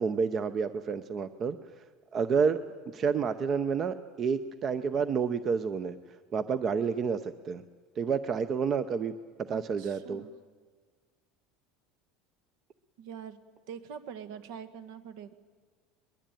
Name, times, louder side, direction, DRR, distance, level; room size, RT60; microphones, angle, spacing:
voice 1, 0.0-1.6 2.1-2.6 2.9-6.0 6.3-7.6 8.0-9.1 9.5-10.2, right 6 dB, 30° right, 12 dB, 0.8 m, -29 dB
voice 2, 9.5-10.3 13.0-13.4 13.7-15.3, right 8 dB, 70° right, 11 dB, 1.8 m, -44 dB
22.0 x 21.5 x 9.1 m, 1.5 s
cardioid pair, 160°, 0 cm